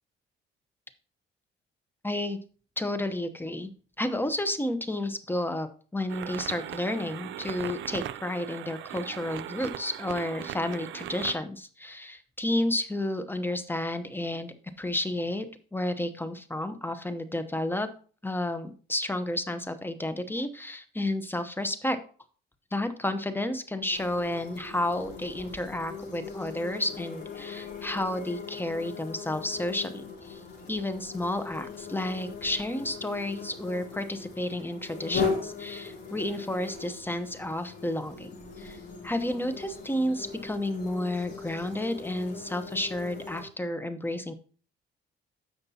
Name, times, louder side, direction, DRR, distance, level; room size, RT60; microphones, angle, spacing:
voice 1, 2.0-2.4 2.8-3.7 4.0-17.9 18.2-22.0 22.7-30.4 30.7-38.8 39.0-44.3, left 1 dB, 10° left, 10 dB, 0.9 m, -31 dB
sound 1, 6.1-11.4, right 12 dB, 75° right, 0.5 m, -39 dB
sound 2, 23.9-43.5, left 5 dB, 55° left, 3.4 m, -39 dB
15.5 x 5.2 x 2.8 m, 0.41 s
cardioid pair, 90°, 20 cm